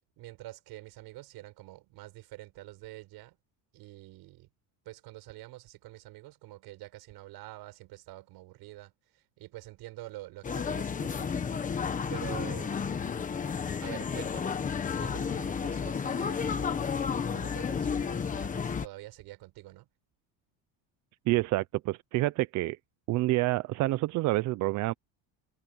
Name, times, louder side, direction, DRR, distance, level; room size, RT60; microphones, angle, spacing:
voice 1, 0.2-3.4 3.7-4.5 4.8-11.7 12.1-12.8 13.8-14.6 15.0-19.9, right 18 dB, 60° right, 6.7 m, -47 dB
sound 1, 10.4-18.9, left 6 dB, 20° left, 1.2 m, -32 dB
voice 2, 21.3-22.8 23.1-24.9, right 18 dB, 45° right, 0.5 m, -28 dB
cardioid pair, 175°, 42 cm